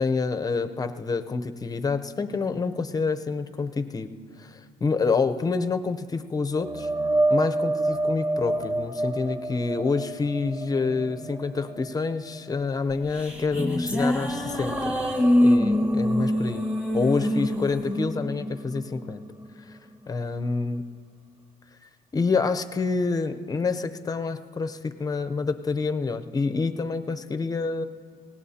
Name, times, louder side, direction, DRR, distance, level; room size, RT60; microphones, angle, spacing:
voice 1, 0.0-4.1 4.4-6.9 7.3-14.9 15.4-16.7 16.9-19.2 19.7-19.8 20.1-20.8 22.1-27.8, left 4 dB, 20° left, 9 dB, 0.7 m, -27 dB
sound 1, 6.6-14.0 14.3-18.2 18.6-18.8 22.1-22.2, right 2 dB, 25° right, 0.6 m, -30 dB
sound 2, 12.9-19.5, left 1 dB, 5° right, 1.5 m, -25 dB
24.0 x 18.0 x 2.8 m, 2.1 s
cardioid pair, 110°, 17 cm